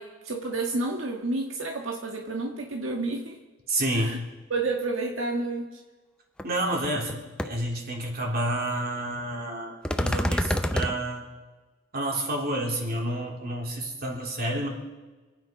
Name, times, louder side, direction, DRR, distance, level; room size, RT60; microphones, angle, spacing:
voice 1, 0.0-3.4 3.9-4.2 4.5-5.8, right 2 dB, 85° right, 1 dB, 1.6 m, -30 dB
voice 2, 3.7-4.2 6.4-11.3 11.9-14.7, right 1 dB, 50° right, 0 dB, 3.6 m, -29 dB
sound 1, 6.4-6.5 6.8-7.1 7.4-7.5 9.9-10.9, equal, 5° left, 0.7 m, -26 dB
28.0 x 9.4 x 5.3 m, 1.2 s
head